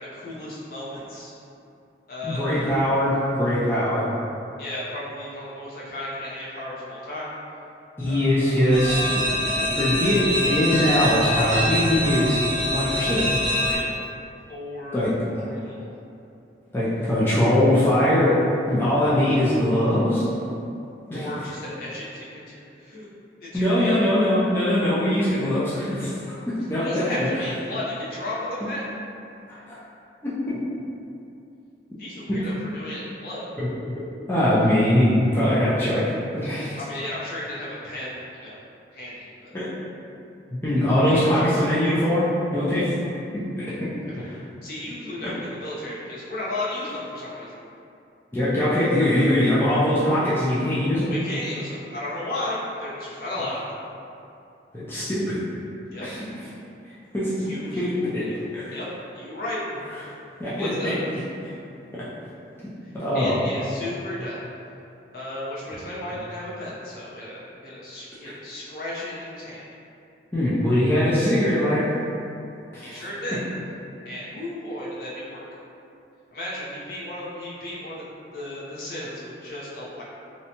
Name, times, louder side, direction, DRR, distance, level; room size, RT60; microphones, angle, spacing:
voice 1, 0.1-1.3 2.1-2.7 4.6-7.4 8.1-8.9 13.5-14.0 14.5-15.0 15.4-15.9 21.1-23.1 23.4-24.0 26.8-28.8 32.0-33.5 36.8-38.6 38.9-39.5 41.1-41.7 44.0-44.3 44.6-47.6 51.0-53.6 55.9-56.1 57.4-58.4 58.7-59.6 60.6-60.9 62.8-64.4 65.1-69.6 72.8-73.4 74.0-75.4 76.3-78.1 78.3-80.0, left 1 dB, 55° left, -7 dB, 0.6 m, -34 dB
voice 2, 2.2-4.0 8.0-12.4 12.6-13.3 14.9-15.1 16.7-18.4 18.7-20.2 21.1-21.3 23.5-27.0 29.5-29.8 30.2-30.6 33.6-33.7 34.3-36.8 39.5-39.7 40.6-42.9 45.2-45.3 48.3-51.1 54.7-55.4 56.0-56.2 57.1-57.3 57.8-58.3 58.5-58.7 60.4-60.9 61.9-62.0 62.9-63.3 68.2-68.3 70.3-71.8 72.7-73.0, left 1 dB, 10° left, -11 dB, 0.4 m, -22 dB
sound 1, 8.7-13.8, equal, 85° right, 0.7 m, -25 dB
2.7 x 2.1 x 2.8 m, 2.7 s
head